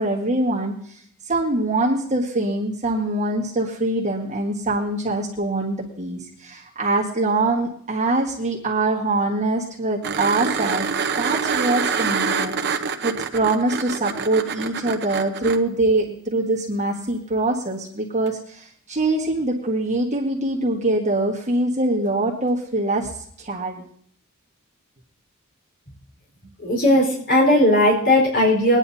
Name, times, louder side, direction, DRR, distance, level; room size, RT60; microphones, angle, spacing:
voice 1, 0.0-10.9 11.2-23.8, right 2 dB, 35° right, -4 dB, 1.6 m, -24 dB
sound 1, 10.0-15.6 18.3-18.4, right 5 dB, 55° right, 0.9 m, -25 dB
voice 2, 26.6-28.8, left 1 dB, 60° left, -2 dB, 4.4 m, -17 dB
23.5 x 9.8 x 2.8 m, 0.62 s
head